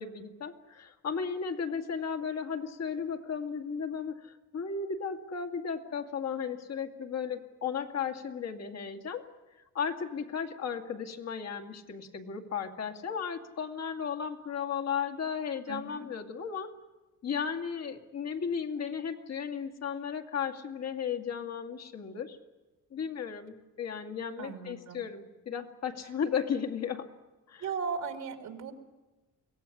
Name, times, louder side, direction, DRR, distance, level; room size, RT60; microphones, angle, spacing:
voice 1, 0.0-9.2 9.7-16.7 17.2-22.4 22.9-27.1 27.5-27.7, left 6 dB, 60° left, 5 dB, 2.3 m, -35 dB
voice 2, 15.7-16.0 24.4-25.0 27.6-28.7, right 6 dB, 80° right, 4 dB, 3.2 m, -37 dB
23.5 x 17.5 x 9.9 m, 1.1 s
cardioid pair, 90°, 30 cm